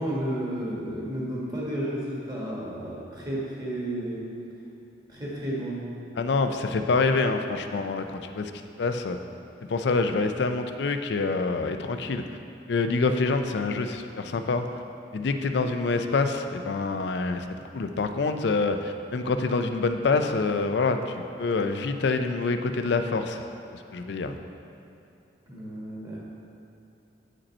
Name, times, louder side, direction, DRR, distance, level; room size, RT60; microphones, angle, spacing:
voice 1, 0.0-4.2 5.1-5.8 25.5-26.2, right 1 dB, 20° right, -6 dB, 1.5 m, -32 dB
voice 2, 6.2-8.5 8.8-9.2 9.6-12.2 12.7-14.6 15.1-17.4 17.7-23.4 23.9-24.4, left 3 dB, 65° left, 7 dB, 0.4 m, -26 dB
8.8 x 5.1 x 4.2 m, 2.7 s
head